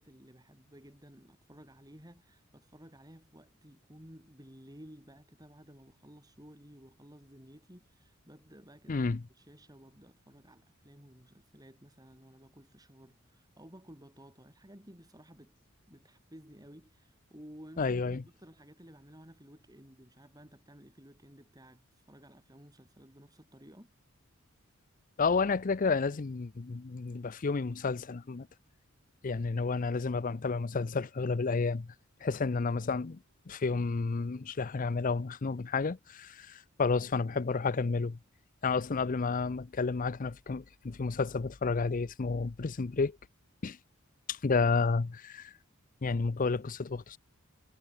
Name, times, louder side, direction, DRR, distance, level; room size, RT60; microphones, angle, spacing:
voice 1, 0.0-9.1 9.3-15.5 15.9-23.9, equal, 15° right, 7.9 m, -54 dB
voice 2, 8.9-9.2 17.8-18.2 25.2-28.5 29.2-31.9 32.2-33.2 33.5-38.2 38.6-43.2 43.6-43.8 44.3-45.5 46.0-47.2, left 4 dB, 40° left, 0.5 m, -31 dB
head